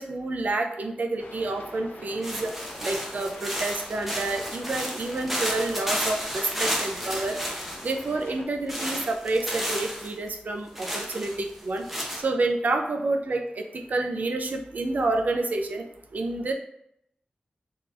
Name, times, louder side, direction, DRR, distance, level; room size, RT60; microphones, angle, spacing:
voice 1, 0.0-2.5 2.8-7.4 7.8-11.8 12.2-16.5, right 2 dB, 60° right, 4 dB, 0.5 m, -29 dB
sound 1, 1.2-8.4, left 2 dB, 90° left, 0.5 m, -44 dB
sound 2, 2.2-8.1 8.7-10.1 10.7-12.2, equal, 5° right, 0.7 m, -32 dB
3.8 x 2.9 x 2.5 m, 0.75 s
wide cardioid pair, 105°, 3 cm